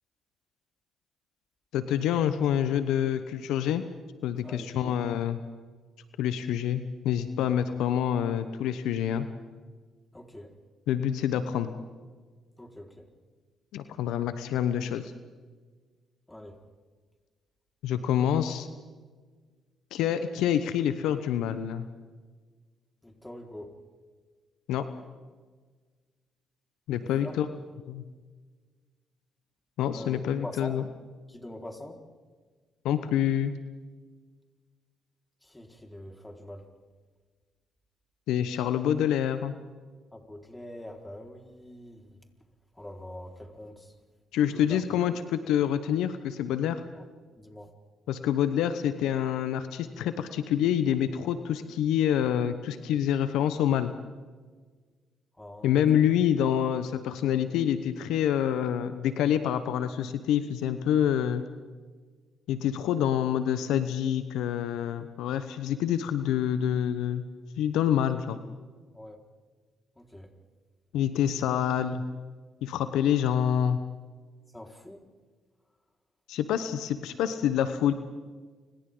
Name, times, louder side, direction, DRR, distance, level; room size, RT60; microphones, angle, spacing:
voice 1, 1.7-3.8 4.2-5.4 6.2-9.3 10.9-11.7 13.7-15.1 17.8-18.7 19.9-21.9 24.7-24.8 26.9-27.5 27.9-28.0 29.8-30.9 32.8-33.5 38.3-39.5 44.3-46.8 48.1-53.9 55.6-61.4 62.5-67.2 67.6-68.4 70.9-72.0 72.6-73.8 76.3-77.9, left 10 dB, 75° left, 11 dB, 1.0 m, -27 dB
voice 2, 4.4-5.0 10.1-10.5 12.6-12.9 16.3-16.5 23.0-23.7 27.2-27.3 29.9-30.8 31.3-32.0 35.5-36.6 40.1-42.0 42.8-43.9 44.5-44.8 47.4-47.7 55.4-55.8 68.9-69.2 70.1-70.3 74.5-75.0, left 1 dB, 15° left, 1 dB, 4.7 m, -43 dB
30.0 x 27.0 x 3.9 m, 1.4 s
hypercardioid pair, 55°, 0 cm